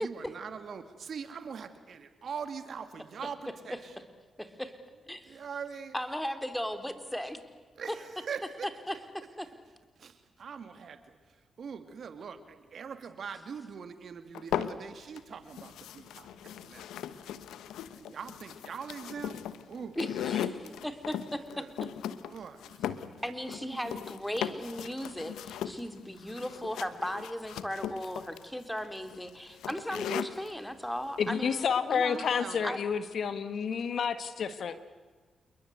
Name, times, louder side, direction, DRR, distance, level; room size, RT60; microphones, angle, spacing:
voice 1, 0.0-3.9 5.3-5.9 7.8-8.7 10.0-17.0 17.9-19.3 19.7-20.0 21.5-21.7 22.1-23.1 23.7-23.9 32.1-32.7, right 6 dB, 65° right, 9 dB, 2.5 m, -42 dB
voice 2, 4.4-4.7 5.1-5.2 5.9-7.4 7.9-8.0 8.9-9.5 20.0-21.4 23.2-32.2 32.6-32.8, equal, 5° left, 8 dB, 3.8 m, -36 dB
sound 1, 14.3-15.2 15.5-30.5, left 10 dB, 85° left, 1.1 m, -38 dB
voice 3, 31.2-34.8, left 6 dB, 65° left, 12 dB, 1.7 m, -30 dB
28.5 x 22.0 x 8.1 m, 1.4 s
supercardioid pair, 45°, 0 cm